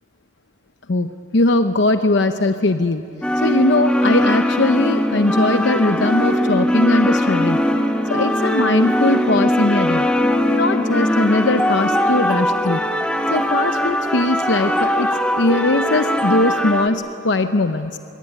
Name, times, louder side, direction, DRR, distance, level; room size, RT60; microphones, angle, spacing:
voice 1, 0.9-3.0 3.4-7.6 8.1-10.1 10.4-12.8 13.3-18.0, left 2 dB, 65° left, 8 dB, 0.8 m, -20 dB
sound 1, 3.2-16.9, equal, 5° left, 1.2 m, -20 dB
25.5 x 23.0 x 9.8 m, 2.9 s
head